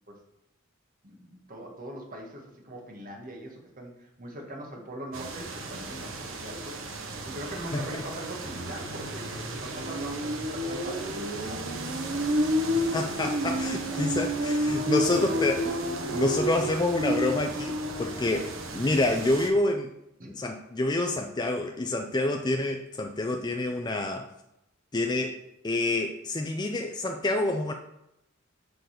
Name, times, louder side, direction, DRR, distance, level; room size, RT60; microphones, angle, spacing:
voice 1, 1.0-11.9 13.7-14.0 14.9-15.0 15.2-15.4 15.9-16.1 20.2-20.4, right 1 dB, 40° right, 1 dB, 1.5 m, -42 dB
sound 1, 5.1-19.5, equal, 70° right, 1.1 m, -31 dB
voice 2, 7.7-8.0 12.7-15.6 16.1-18.5 18.7-19.9 20.4-24.3 24.9-25.4 25.6-27.7, left 2 dB, 20° left, 4 dB, 0.4 m, -28 dB
6.7 x 3.9 x 6.4 m, 0.86 s
head